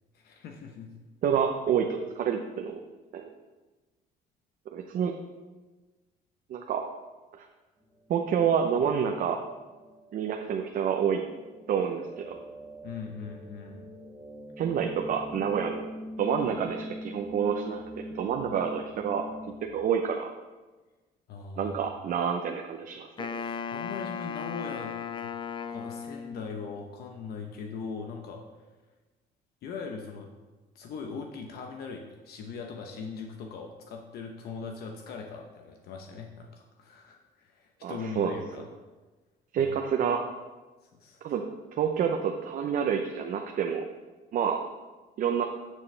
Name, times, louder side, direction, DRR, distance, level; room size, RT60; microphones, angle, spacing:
voice 1, 0.1-0.9 12.8-13.9 21.3-21.8 23.3-25.3 25.7-28.4 29.6-30.3 30.7-38.7 39.6-39.7 41.0-41.2, left 5 dB, 70° left, 3 dB, 0.9 m, -40 dB
voice 2, 1.2-2.8 3.1-3.3 4.7-5.1 6.5-6.8 7.4-7.5 8.1-9.4 10.1-11.2 11.7-12.3 14.6-15.9 16.2-17.8 18.1-19.3 19.7-20.3 21.6-23.3 37.8-38.3 39.5-40.3 41.2-41.4 41.7-43.8 44.3-44.6 45.2-45.4, right 7 dB, 55° right, 3 dB, 0.7 m, -28 dB
sound 1, 7.8-19.7, left 1 dB, 15° right, 2.1 m, -44 dB
Wind instrument woodwind instrument, 23.2-26.7, left 6 dB, 30° left, 0.4 m, -36 dB
11.0 x 6.4 x 3.3 m, 1.2 s
cardioid pair, 110°, 17 cm